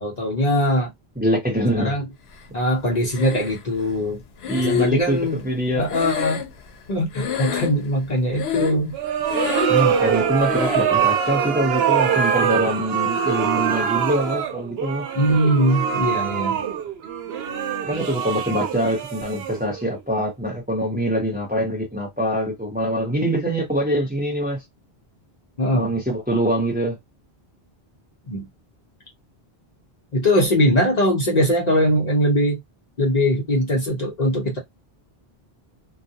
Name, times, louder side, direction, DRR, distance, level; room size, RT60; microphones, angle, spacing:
voice 1, 0.0-0.9 1.8-2.1 2.5-4.2 4.6-5.4 5.7-6.4 6.9-9.0 15.1-16.6 25.6-25.9 28.3-28.4 30.1-32.6 33.0-34.6, equal, 45° left, 0.8 m, -21 dB
voice 2, 1.2-2.0 4.5-5.9 9.7-15.0 17.8-24.6 25.7-27.0, equal, 10° right, 0.8 m, -24 dB
Breathing, 3.1-3.8 4.4-6.9 7.1-8.0 8.3-8.9 9.2-9.9 10.5-11.0, left 8 dB, 90° left, 0.9 m, -28 dB
sound 1, 8.9-19.9, right 8 dB, 80° right, 0.8 m, -23 dB
2.3 x 2.2 x 2.7 m
omnidirectional pair, 1.0 m